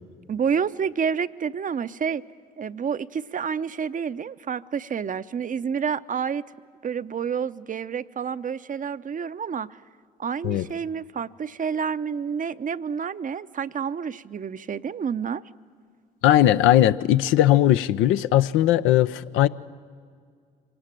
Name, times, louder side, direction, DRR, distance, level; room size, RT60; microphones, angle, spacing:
voice 1, 0.3-2.2 2.6-6.4 6.8-9.8 10.2-15.4, right 7 dB, 40° right, 14 dB, 0.7 m, -29 dB
voice 2, 16.2-19.5, left 13 dB, 75° left, 12 dB, 0.6 m, -19 dB
24.5 x 18.5 x 9.0 m, 2.1 s
hypercardioid pair, 60°, 21 cm